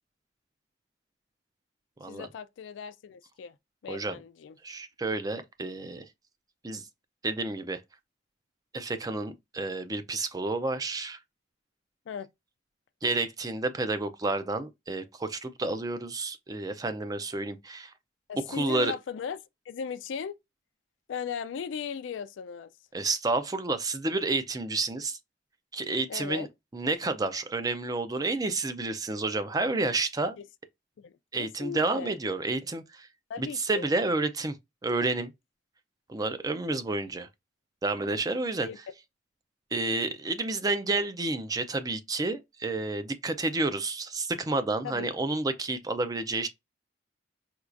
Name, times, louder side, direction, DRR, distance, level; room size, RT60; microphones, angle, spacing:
voice 1, 2.1-3.6 3.8-4.6 12.1-12.3 18.3-19.4 19.7-20.4 21.1-22.7 26.1-26.5 30.4-30.5 31.0-32.1 33.3-33.9 38.6-38.8 44.8-45.1, left 6 dB, 75° left, 0.3 m, -37 dB
voice 2, 3.9-4.2 4.6-6.1 6.6-6.8 7.2-7.8 8.7-11.2 13.0-17.9 18.5-19.0 22.9-25.2 25.7-26.5 26.7-30.4 31.3-33.1 33.4-34.6 34.8-35.3 36.1-37.3 37.8-38.7 39.7-46.5, right 3 dB, 20° right, 0.4 m, -30 dB
4.5 x 2.3 x 2.5 m
head